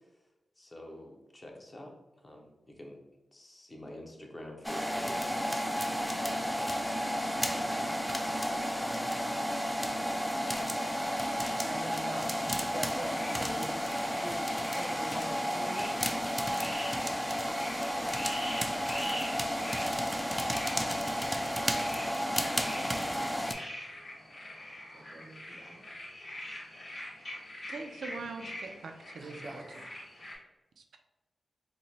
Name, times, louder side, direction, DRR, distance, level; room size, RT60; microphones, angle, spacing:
voice 1, 0.6-1.9 2.2-3.0 3.3-5.6 6.1-6.8, left 1 dB, 25° left, 1 dB, 0.7 m, -47 dB
sound 1, 4.6-23.5, equal, ahead, 0.3 m, -32 dB
voice 2, 7.3-9.4 11.6-15.9 22.6-23.7 24.9-25.9 29.2-29.7, right 2 dB, 45° right, 3 dB, 0.6 m, -45 dB
sound 2, 13.0-30.3, left 1 dB, 50° left, 1.2 m, -44 dB
voice 3, 27.7-29.4 30.8-31.0, right 4 dB, 90° right, 4 dB, 0.3 m, -42 dB
3.0 x 2.1 x 3.9 m, 1.0 s
wide cardioid pair, 85°, 0 cm